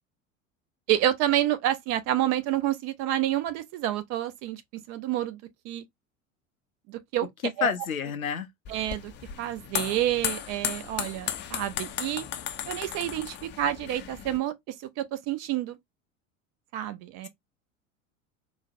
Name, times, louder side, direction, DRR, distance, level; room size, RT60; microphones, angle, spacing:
voice 1, 0.9-4.6 4.9-5.4 5.6-5.8 6.9-7.3 7.6-7.7 8.7-9.1 9.4-12.2 12.7-15.8 16.7-17.3, right 12 dB, 40° right, 0.5 m, -28 dB
voice 2, 7.6-8.5, left 7 dB, 90° left, 0.6 m, -28 dB
sound 1, 8.7-14.4, left 9 dB, 30° left, 0.5 m, -35 dB
3.9 x 2.0 x 2.5 m
figure-of-eight pair, 75°, 41 cm